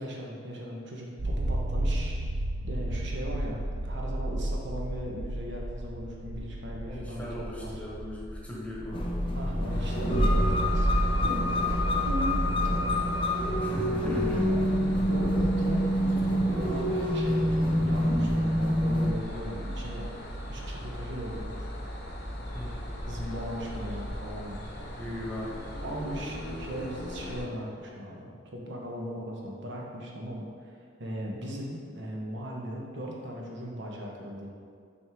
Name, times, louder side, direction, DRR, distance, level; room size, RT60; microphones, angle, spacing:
voice 1, 0.0-2.3 2.6-7.8 9.3-10.9 11.2-12.4 14.2-20.1 20.5-21.7 23.1-24.6 25.8-34.5, equal, 65° right, -2 dB, 1.0 m, -38 dB
sound 1, 1.2-16.8, right 1 dB, 80° right, 0.6 m, -32 dB
voice 2, 6.9-9.1 13.6-14.4 22.5-22.8 25.0-25.6 31.4-31.6, left 1 dB, 5° left, -6 dB, 1.2 m, -39 dB
sound 2, 8.9-19.1, left 1 dB, 25° left, 0.6 m, -27 dB
sound 3, 9.7-27.5, equal, 60° left, 0.9 m, -38 dB
6.2 x 4.5 x 3.6 m, 2.2 s
head